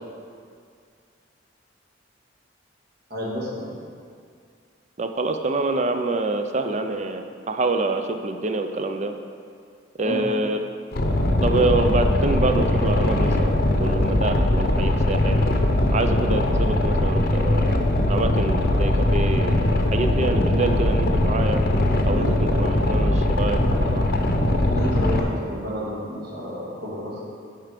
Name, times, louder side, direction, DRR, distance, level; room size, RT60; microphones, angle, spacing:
voice 1, 3.1-3.8 10.0-10.2 22.1-22.3 24.7-27.3, equal, 55° right, -6 dB, 2.2 m, -30 dB
voice 2, 5.0-9.1 10.0-10.6 11.4-15.4 15.9-17.8 18.1-19.6 19.9-21.6 22.0-24.1, right 2 dB, 35° right, 6 dB, 0.5 m, -26 dB
Boat Water vehicle, 10.9-25.2, left 1 dB, 50° left, 0.7 m, -21 dB
11.0 x 4.4 x 5.1 m, 2.2 s
head